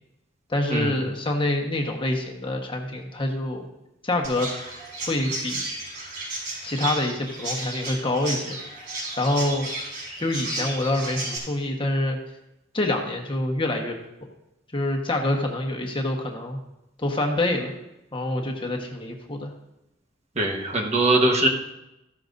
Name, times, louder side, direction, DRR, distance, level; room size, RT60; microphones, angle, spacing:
voice 1, 0.5-3.7 4.0-4.5 5.0-5.6 6.6-8.6 9.2-9.7 10.2-12.2 12.7-13.9 14.7-16.6 17.0-17.7 18.1-19.5, left 1 dB, 25° left, 2 dB, 1.3 m, -26 dB
Chirp tweet, 4.2-11.4, right 2 dB, 60° right, 4.8 m, -33 dB
voice 2, 20.4-21.5, right 2 dB, 35° right, 1 dB, 1.3 m, -21 dB
14.5 x 11.5 x 2.6 m, 0.90 s
head